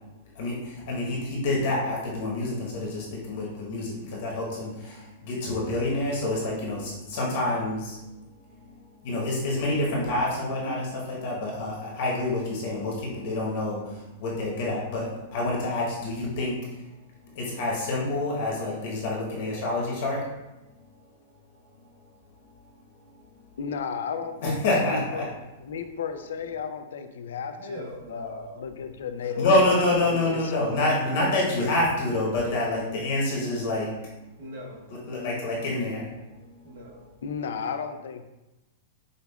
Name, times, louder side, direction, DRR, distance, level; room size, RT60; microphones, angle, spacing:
voice 1, 0.3-8.2 8.5-16.8 17.3-20.2 24.4-25.2 29.4-34.2 35.1-36.3 36.6-36.7, left 2 dB, 50° left, -4 dB, 0.9 m, -27 dB
voice 2, 23.6-25.3 25.6-30.9 37.2-38.2, left 6 dB, 85° left, 8 dB, 0.3 m, -34 dB
voice 3, 27.6-28.6 29.2-29.5 34.4-34.8 36.6-37.0, right 1 dB, 75° right, -3 dB, 1.1 m, -41 dB
5.1 x 2.3 x 2.2 m, 1.0 s
supercardioid pair, 165°, 0 cm